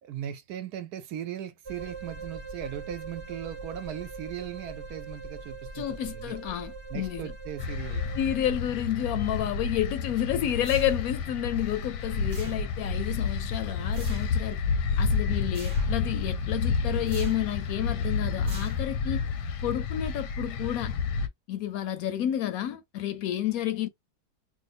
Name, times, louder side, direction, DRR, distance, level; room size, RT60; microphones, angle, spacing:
voice 1, 0.0-6.3 6.9-8.2, right 10 dB, 75° right, 1.1 m, -38 dB
sound 1, 1.7-8.6, right 4 dB, 10° right, 0.9 m, -41 dB
voice 2, 5.7-7.3 8.1-14.6 15.0-19.2 19.6-20.9 21.5-23.9, left 11 dB, 70° left, 0.9 m, -30 dB
sound 2, 7.6-21.3, left 5 dB, 90° left, 1.3 m, -30 dB
sound 3, 10.6-11.3 12.3-13.0 13.9-14.4 15.5-16.1 17.1-17.6 18.4-19.1, right 3 dB, 40° right, 0.9 m, -47 dB
2.8 x 2.1 x 4.1 m
omnidirectional pair, 1.7 m